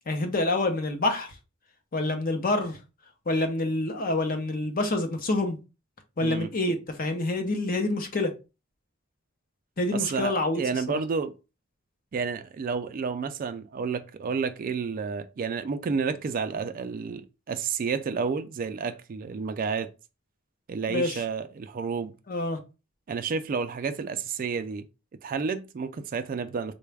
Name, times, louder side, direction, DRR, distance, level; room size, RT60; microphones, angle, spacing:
voice 1, 0.1-1.3 1.9-2.8 3.3-5.6 6.2-8.3 9.8-10.6 10.9-11.0 20.9-21.2 22.3-22.6, left 2 dB, 45° left, 0.7 m, -27 dB
voice 2, 9.9-11.3 12.1-19.9 20.7-22.1 23.1-24.9 25.2-26.7, right 5 dB, 45° right, 0.3 m, -30 dB
3.9 x 2.3 x 3.3 m
head